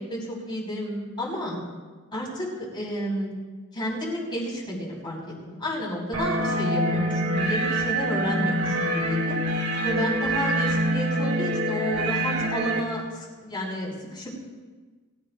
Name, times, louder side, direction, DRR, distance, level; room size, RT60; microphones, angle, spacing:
voice 1, 0.0-1.6 2.1-3.3 3.7-9.4 9.8-14.4, equal, 20° left, -4 dB, 5.6 m, -31 dB
sound 1, 6.1-12.8, right 1 dB, 80° right, 3.5 m, -25 dB
23.0 x 15.0 x 2.6 m, 1.3 s
head